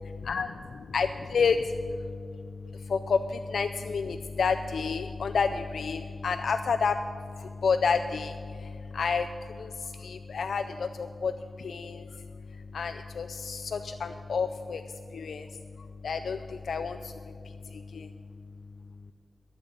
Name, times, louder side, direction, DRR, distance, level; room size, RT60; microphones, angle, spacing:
voice 1, 0.9-1.6 2.9-3.2 3.5-6.9 7.6-8.3 8.9-9.3 10.0-11.3 11.6-12.0 12.7-14.8 15.1-15.4 16.0-16.4 16.7-17.0, left 5 dB, 90° left, 7 dB, 0.4 m, -28 dB
12.5 x 6.8 x 9.5 m, 2.3 s
wide cardioid pair, 130°, 0 cm